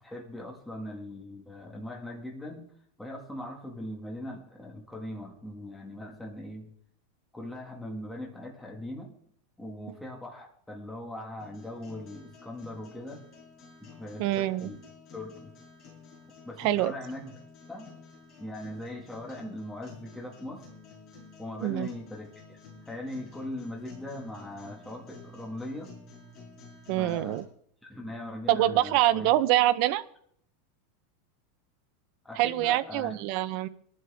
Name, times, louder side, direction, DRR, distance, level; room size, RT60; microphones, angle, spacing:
voice 1, 0.0-2.7 3.0-6.7 7.3-9.1 9.6-13.2 13.8-14.8 15.1-15.5 16.5-17.4 17.7-18.0 18.4-20.6 21.4-22.6 22.9-25.9 27.0-27.4 27.8-29.3 32.2-33.2, left 1 dB, 5° left, 0 dB, 1.7 m, -40 dB
sound 1, 11.4-27.4, left 4 dB, 30° left, 5.3 m, -51 dB
voice 2, 14.2-14.7 16.6-16.9 21.6-21.9 26.9-27.4 28.5-30.0 32.4-33.7, right 14 dB, 45° right, 12 dB, 0.8 m, -25 dB
21.0 x 11.5 x 3.5 m, 0.65 s
supercardioid pair, 170°, 0 cm